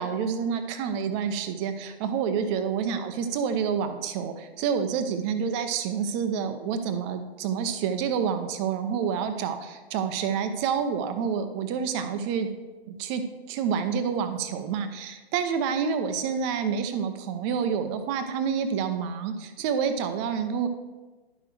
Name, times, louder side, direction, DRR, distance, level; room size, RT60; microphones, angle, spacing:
voice 1, 0.0-12.5 12.9-13.2 13.5-20.7, right 7 dB, 25° right, 8 dB, 0.7 m, -28 dB
11.0 x 6.0 x 3.3 m, 1.2 s
figure-of-eight pair, 125°, 32 cm